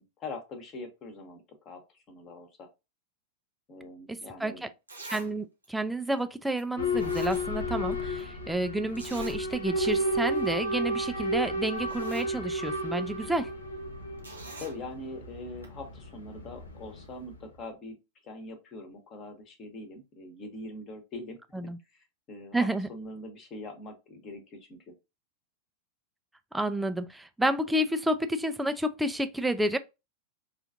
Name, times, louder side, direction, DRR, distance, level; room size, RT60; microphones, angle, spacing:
voice 1, 0.0-2.7 3.7-4.7 14.6-18.0 18.2-21.4 21.9-24.9, left 2 dB, 30° left, 1.2 m, -43 dB
voice 2, 4.1-4.7 5.1-13.5 21.5-21.8 22.5-22.9 26.5-29.8, right 1 dB, 5° right, 0.4 m, -30 dB
Zipper (clothing), 4.3-4.4 4.9-5.3 5.6-5.7 6.6-6.7 6.9-7.9 8.2-8.3 9.0-9.4 9.8-9.9 10.3-10.5 11.3-11.4 11.7-12.3 14.2-14.8 15.6-15.7, right 2 dB, 85° right, 1.1 m, -44 dB
Boat Water vehicle / Alarm, 6.8-17.4, equal, 70° left, 0.7 m, -32 dB
5.5 x 2.4 x 2.6 m
figure-of-eight pair, 90°, 0 cm